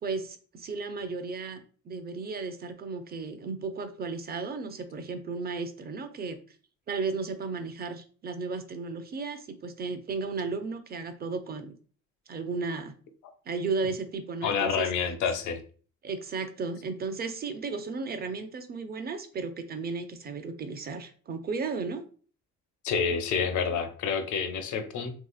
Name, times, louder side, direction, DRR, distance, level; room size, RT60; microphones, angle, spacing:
voice 1, 0.0-6.4 6.9-11.7 12.3-12.9 13.5-14.9 16.0-22.0, right 4 dB, 30° right, 8 dB, 0.5 m, -34 dB
voice 2, 14.4-15.6 22.8-25.1, left 6 dB, 80° left, 8 dB, 0.6 m, -28 dB
3.1 x 2.8 x 2.3 m, 0.41 s
cardioid pair, 90°, 30 cm